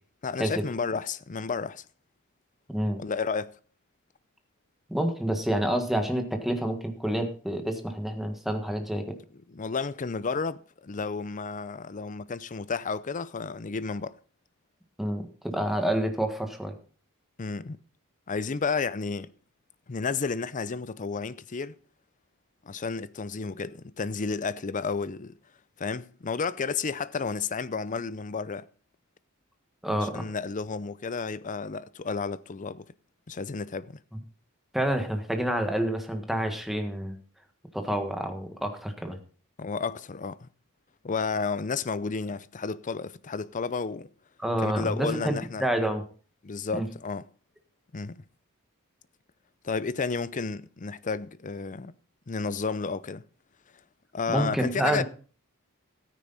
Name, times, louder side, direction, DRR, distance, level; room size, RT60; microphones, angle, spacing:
voice 1, 0.2-1.8 3.0-3.5 9.5-14.1 17.4-17.8 18.3-19.3 19.9-21.7 22.6-25.3 25.8-28.7 30.0-32.9 33.3-34.0 39.6-40.5 41.0-44.1 44.6-45.7 46.4-47.2 47.9-48.2 49.6-51.9 52.3-53.2 54.1-55.0, left 4 dB, 35° left, 0.6 m, -32 dB
voice 2, 2.7-3.0 4.9-9.2 15.0-16.7 29.8-30.3 34.7-37.2 37.7-39.2 44.4-46.0 46.7-46.9 54.3-55.0, right 1 dB, ahead, 1.6 m, -28 dB
14.0 x 9.5 x 4.2 m
head